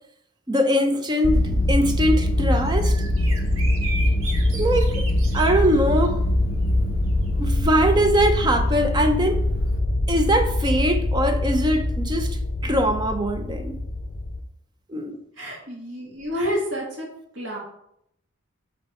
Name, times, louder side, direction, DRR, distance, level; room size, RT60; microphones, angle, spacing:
voice 1, 0.5-1.4 1.7-3.0 4.5-5.1 5.3-6.2 7.4-9.4 10.1-13.8 14.9-15.2, equal, 20° right, 0.6 m, -22 dB
sound 1, 1.2-14.4, left 1 dB, 45° left, 0.5 m, -23 dB
Bird vocalization bird call bird song, 1.3-9.8, right 1 dB, 90° right, 1.4 m, -37 dB
voice 2, 15.4-17.1 17.3-17.6, equal, 65° right, 1.9 m, -29 dB
7.2 x 4.1 x 4.3 m
head